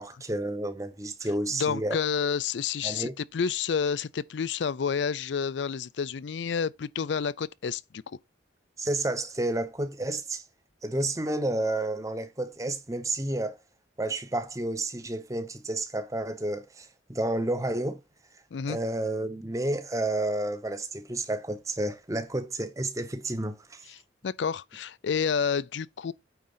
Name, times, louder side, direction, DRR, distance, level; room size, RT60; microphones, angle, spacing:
voice 1, 0.0-2.0 2.8-3.1 8.8-10.4 10.8-13.6 14.0-18.0 18.7-23.8, right 1 dB, 15° right, 0.9 m, -30 dB
voice 2, 1.5-8.0 18.5-18.8 23.9-26.1, left 6 dB, 80° left, 0.4 m, -29 dB
9.1 x 3.8 x 5.5 m
head